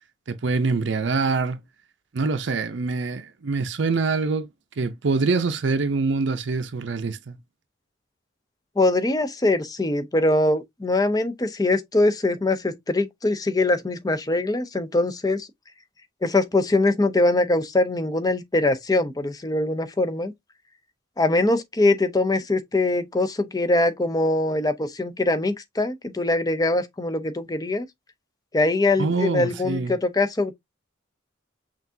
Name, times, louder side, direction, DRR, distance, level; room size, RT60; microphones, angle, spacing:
voice 1, 0.3-1.6 2.1-4.5 4.8-7.4 29.0-29.9, right 4 dB, 60° right, 0.6 m, -25 dB
voice 2, 8.8-15.5 16.2-20.3 21.2-27.9 28.5-30.5, left 2 dB, 20° left, 0.5 m, -22 dB
5.8 x 2.5 x 2.6 m
head